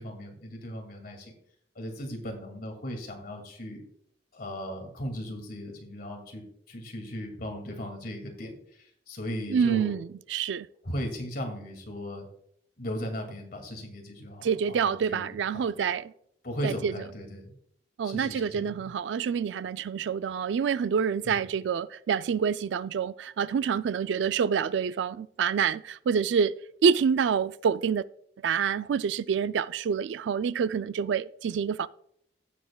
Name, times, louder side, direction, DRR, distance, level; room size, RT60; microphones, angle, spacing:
voice 1, 0.0-1.3 1.8-3.8 4.3-9.9 10.8-12.3 12.8-16.0 16.4-17.5 18.0-18.9 21.2-21.4, equal, 55° left, 2.3 m, -37 dB
voice 2, 9.5-10.7 14.4-16.1 16.6-16.9 18.0-26.5 26.8-28.0 28.4-31.9, right 6 dB, 75° right, 0.3 m, -27 dB
15.5 x 7.1 x 2.3 m
head